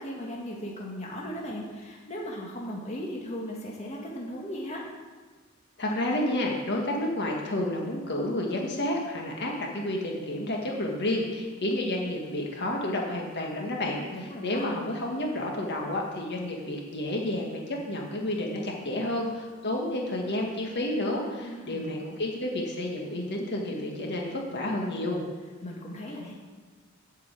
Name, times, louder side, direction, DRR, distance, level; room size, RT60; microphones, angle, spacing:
voice 1, 0.0-4.8 14.1-14.7 21.3-21.9 25.6-26.3, equal, 35° left, -2 dB, 1.7 m, -37 dB
voice 2, 5.8-25.2, left 1 dB, 55° left, 0 dB, 1.7 m, -30 dB
8.2 x 6.7 x 8.4 m, 1.4 s
head